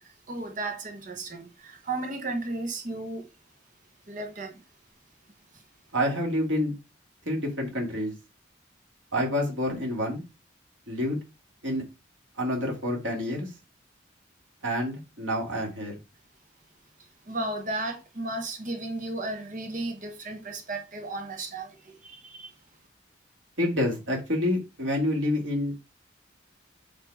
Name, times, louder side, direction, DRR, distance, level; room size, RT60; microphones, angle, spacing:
voice 1, 0.3-3.3 4.1-4.5 17.3-21.7 22.0-22.5, right 2 dB, 45° right, 1.0 m, -34 dB
voice 2, 5.9-6.7 7.3-8.1 9.1-10.2 10.9-11.2 11.6-11.8 12.4-13.5 14.6-15.9 23.6-25.7, left 1 dB, 90° right, 2.2 m, -28 dB
8.1 x 2.8 x 4.6 m
head